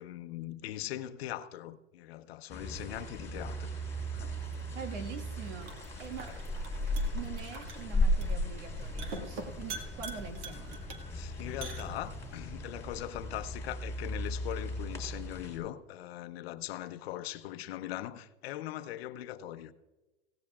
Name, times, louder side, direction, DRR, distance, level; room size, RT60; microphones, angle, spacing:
voice 1, 0.0-3.7 4.1-4.4 11.1-19.7, left 13 dB, 55° left, 0.8 m, -41 dB
sound 1, 2.5-15.6, left 1 dB, 5° left, 3.7 m, -36 dB
sound 2, 4.4-12.4, right 3 dB, 50° right, 1.9 m, -47 dB
voice 2, 4.7-6.3 7.1-10.9, right 6 dB, 70° right, 1.8 m, -44 dB
17.0 x 16.0 x 2.4 m
supercardioid pair, 150°, 37 cm